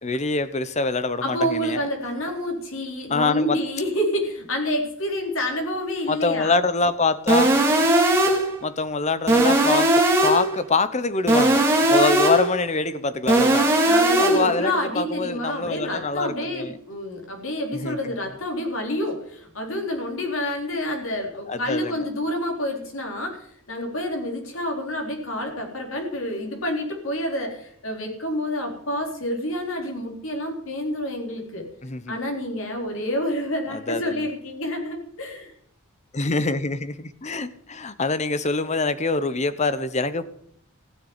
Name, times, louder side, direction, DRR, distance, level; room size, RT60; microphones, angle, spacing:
voice 1, 0.0-1.8 3.1-3.6 6.1-7.6 8.6-11.6 11.9-13.7 14.2-16.8 17.7-18.1 21.5-22.0 31.8-32.2 33.7-34.3 36.1-40.2, left 3 dB, 30° left, 14 dB, 0.9 m, -25 dB
voice 2, 1.2-6.6 13.8-31.7 32.1-35.5, left 1 dB, 65° left, 2 dB, 3.8 m, -28 dB
sound 1, 7.3-8.5 9.3-10.5 11.3-12.5 13.3-14.5, right 1 dB, 10° right, 2.4 m, -18 dB
16.0 x 6.8 x 9.6 m, 0.68 s
head